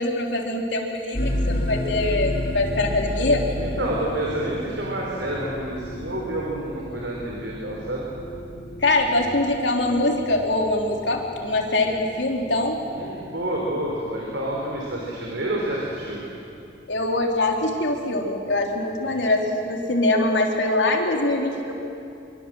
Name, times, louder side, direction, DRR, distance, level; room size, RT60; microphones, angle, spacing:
voice 1, 0.0-3.4 8.8-12.8 16.9-21.7, left 2 dB, 85° left, 1 dB, 3.3 m, -23 dB
sound 1, 1.1-19.7, left 1 dB, 55° left, 3.5 m, -33 dB
voice 2, 3.6-8.1 9.1-9.2 12.9-16.2 19.0-19.2, right 1 dB, 85° right, -3 dB, 4.1 m, -29 dB
25.5 x 24.0 x 7.7 m, 2.7 s
head